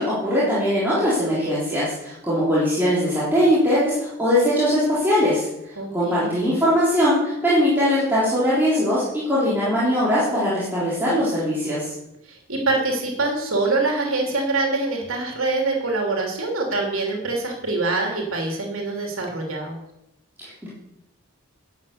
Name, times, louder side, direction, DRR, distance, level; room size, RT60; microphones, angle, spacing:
voice 1, 0.0-11.9 20.4-20.7, equal, 10° right, -10 dB, 3.6 m, -21 dB
voice 2, 5.8-6.5 12.3-19.8, right 3 dB, 70° right, 0 dB, 3.1 m, -25 dB
12.0 x 8.4 x 7.1 m, 0.86 s
head